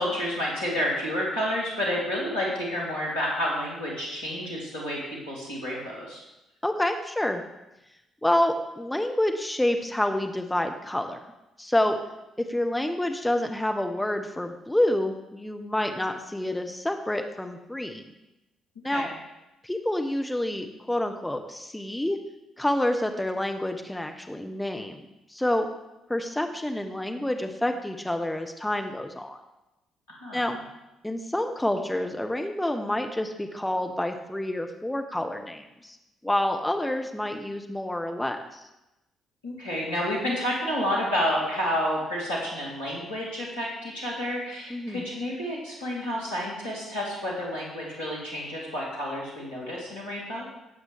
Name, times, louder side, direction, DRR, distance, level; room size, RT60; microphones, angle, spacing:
voice 1, 0.0-5.0 5.3-6.2 18.8-19.1 30.1-30.5 39.4-50.5, equal, 80° left, -6 dB, 3.2 m, -30 dB
voice 2, 6.6-7.4 8.2-11.2 11.6-12.0 12.4-18.1 18.8-19.1 19.6-22.2 22.6-25.7 26.1-29.4 30.3-30.6 31.0-36.0 36.2-38.7 44.7-45.1, left 1 dB, 10° left, 5 dB, 1.0 m, -28 dB
17.5 x 7.9 x 3.5 m, 0.95 s
figure-of-eight pair, 45°, 0 cm